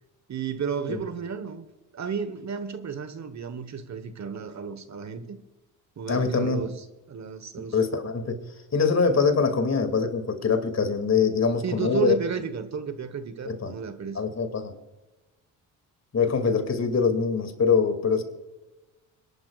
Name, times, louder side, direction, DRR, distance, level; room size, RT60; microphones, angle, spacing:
voice 1, 0.3-1.7 1.9-5.4 6.0-7.8 11.6-14.2, right 6 dB, 45° right, 11 dB, 1.3 m, -32 dB
voice 2, 6.1-6.6 7.7-8.4 8.7-12.1 13.5-13.7 14.1-14.8 16.1-18.2, left 5 dB, 40° left, 7 dB, 2.5 m, -23 dB
23.5 x 11.5 x 2.4 m, 1.1 s
supercardioid pair, 65°, 40 cm